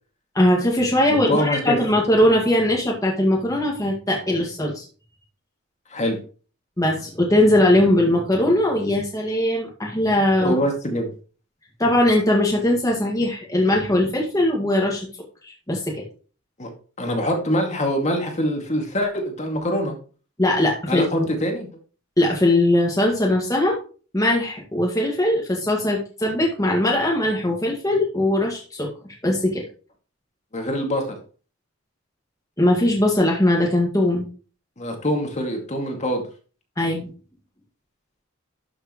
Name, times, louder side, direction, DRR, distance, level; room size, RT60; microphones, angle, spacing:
voice 1, 0.4-4.8 6.8-10.5 11.8-15.1 15.4-16.0 20.4-21.1 22.2-23.8 24.1-28.9 29.2-29.6 32.6-34.3 36.8-37.1, left 1 dB, 15° left, -1 dB, 1.9 m, -20 dB
voice 2, 1.1-1.8 5.9-6.2 10.4-11.1 16.6-16.7 17.0-20.0 20.9-21.7 30.5-31.0 34.8-36.2, equal, 35° left, 2 dB, 2.2 m, -24 dB
12.0 x 6.6 x 3.1 m, 0.38 s
head